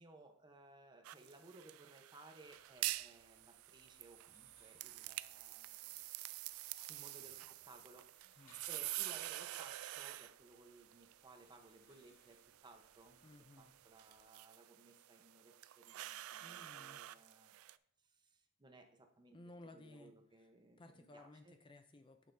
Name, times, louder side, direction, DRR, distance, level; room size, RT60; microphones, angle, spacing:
voice 1, 0.0-6.0 6.9-13.2 13.6-17.7 18.0-19.4 19.7-21.5, right 2 dB, 20° right, 5 dB, 0.8 m, -61 dB
sound 1, 1.0-17.8, right 16 dB, 85° right, 0.3 m, -48 dB
sound 2, 2.4-14.2, left 2 dB, 85° left, 2.8 m, -76 dB
voice 2, 13.2-13.8 16.4-17.0 19.3-20.5 20.8-22.3, left 2 dB, 25° left, 7 dB, 0.4 m, -58 dB
10.0 x 6.5 x 2.6 m, 0.62 s
head